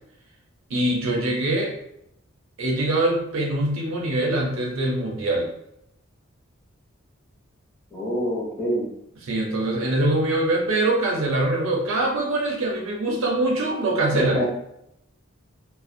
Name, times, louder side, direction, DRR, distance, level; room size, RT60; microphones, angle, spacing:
voice 1, 0.7-1.7 2.6-5.5 9.2-14.4, right 2 dB, 75° right, -1 dB, 0.5 m, -23 dB
voice 2, 7.9-8.9 14.1-14.4, equal, 5° left, -7 dB, 0.6 m, -25 dB
2.4 x 2.0 x 2.5 m, 0.78 s
head